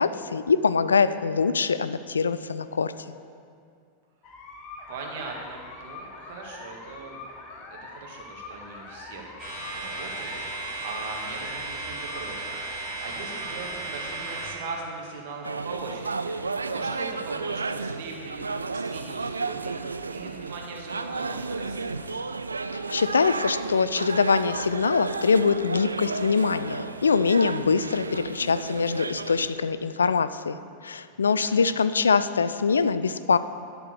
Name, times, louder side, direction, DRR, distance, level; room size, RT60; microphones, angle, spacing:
voice 1, 0.0-2.9 22.7-30.6 30.8-33.4, left 5 dB, 70° left, 14 dB, 0.3 m, -23 dB
sound 1, 4.2-13.8, left 3 dB, 30° left, 1.2 m, -44 dB
voice 2, 4.9-7.2 7.5-9.2 9.7-19.8 20.1-22.2 31.2-31.8, right 4 dB, 50° right, 0 dB, 1.7 m, -40 dB
sound 2, 9.4-14.5, right 3 dB, 25° right, 2.7 m, -35 dB
sound 3, 15.4-29.5, right 4 dB, 75° right, 0.3 m, -32 dB
12.0 x 4.6 x 7.0 m, 2.3 s
figure-of-eight pair, 90°, 0 cm